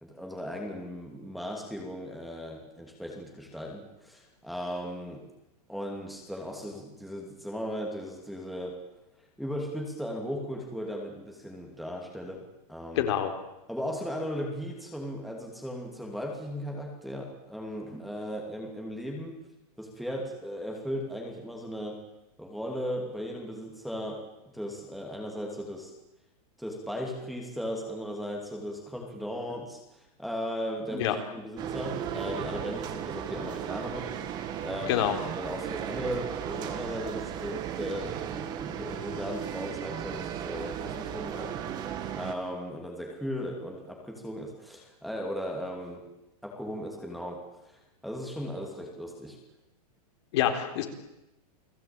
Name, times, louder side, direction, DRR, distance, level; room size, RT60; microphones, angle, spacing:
voice 1, 0.0-5.2 5.7-8.8 9.4-13.1 13.7-19.4 19.8-22.0 22.4-24.2 24.5-25.9 26.6-29.8 30.2-46.1 46.4-49.4, equal, ahead, 0 dB, 2.8 m, -37 dB
voice 2, 13.0-13.3 30.9-31.1 34.9-35.2 50.3-50.9, left 11 dB, 45° left, 5 dB, 3.9 m, -26 dB
sound 1, 31.6-42.3, right 9 dB, 20° right, 1.9 m, -35 dB
29.5 x 20.0 x 8.9 m, 0.93 s
supercardioid pair, 175°, 20 cm